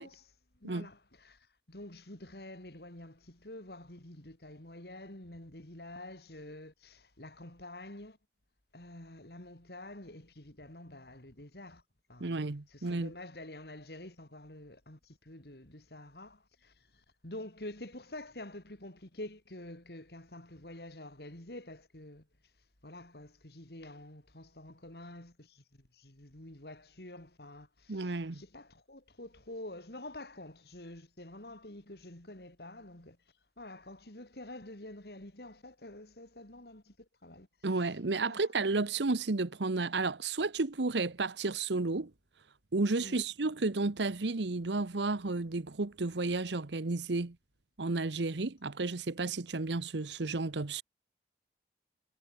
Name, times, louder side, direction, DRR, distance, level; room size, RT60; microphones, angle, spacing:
voice 1, 0.0-8.2 8.7-11.8 12.1-12.3 12.7-22.3 22.8-33.2 33.6-37.5 38.2-38.4 43.0-43.3, left 1 dB, 65° left, 3.3 m, -48 dB
voice 2, 12.2-13.1 27.9-28.4 37.6-42.1 42.7-47.4 47.8-50.8, right 3 dB, 80° right, 1.0 m, -32 dB
head